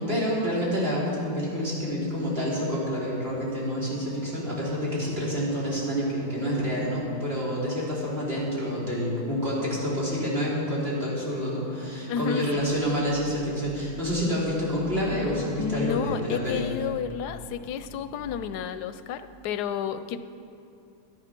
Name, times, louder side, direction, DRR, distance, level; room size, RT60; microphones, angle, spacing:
voice 1, 0.0-16.6, equal, 40° right, -6 dB, 3.4 m, -28 dB
sound 1, 2.1-18.7, left 3 dB, 65° left, 1.9 m, -45 dB
voice 2, 12.1-12.7 15.6-20.2, left 8 dB, 90° left, 11 dB, 1.2 m, -31 dB
11.5 x 11.0 x 6.0 m, 2.6 s
omnidirectional pair, 1.7 m